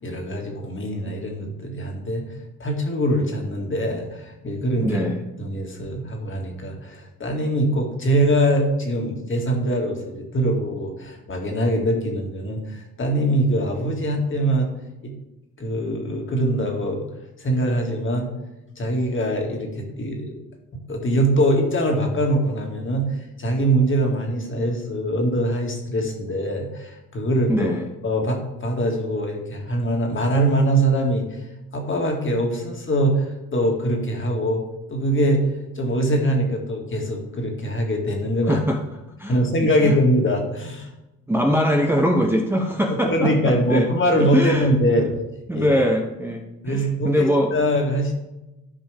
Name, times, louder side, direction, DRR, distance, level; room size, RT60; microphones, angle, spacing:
voice 1, 0.0-2.3 2.6-5.0 5.4-14.7 15.0-15.1 15.6-17.1 17.4-18.3 18.8-20.4 20.7-27.7 28.0-31.3 31.7-33.3 33.5-34.6 34.9-35.5 35.8-38.6 39.3-40.9 43.1-45.1 45.5-45.8 46.6-48.1, right 1 dB, 35° left, 1 dB, 2.2 m, -23 dB
voice 2, 4.8-5.2 27.5-27.9 38.5-38.8 39.2-39.4 39.8-39.9 41.3-43.9 44.2-44.7 45.5-47.5, equal, 5° right, 1 dB, 0.8 m, -22 dB
13.0 x 5.1 x 3.5 m, 0.98 s
cardioid pair, 90°, 34 cm